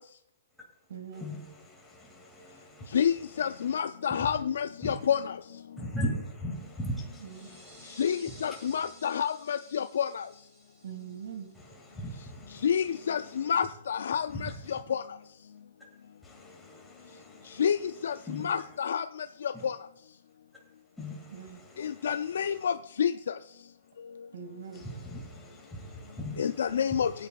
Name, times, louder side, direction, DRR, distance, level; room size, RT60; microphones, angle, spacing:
voice 1, 0.9-1.3 7.2-7.5 10.8-11.5 21.3-21.6 24.3-24.9, right 7 dB, 70° right, 7 dB, 2.0 m, -42 dB
voice 2, 1.7-3.0 4.2-4.3 4.8-4.9 5.8-8.0 8.4-8.8 11.9-12.7 13.3-13.5 14.4-14.5 16.2-17.6 18.2-18.5 19.5-19.6 21.0-21.3 21.9-22.1 24.8-27.0, equal, 5° left, -3 dB, 2.1 m, -39 dB
voice 3, 2.9-5.2 8.0-10.2 12.6-14.5 14.9-15.0 17.6-17.8 18.0-18.1 18.4-19.0 19.6-19.7 21.8-23.1 26.4-27.1, left 8 dB, 80° left, 12 dB, 0.4 m, -28 dB
sound 1, 7.2-12.5, right 1 dB, 15° right, 3.8 m, -56 dB
17.0 x 9.3 x 2.3 m, 0.79 s
hypercardioid pair, 155°, 0 cm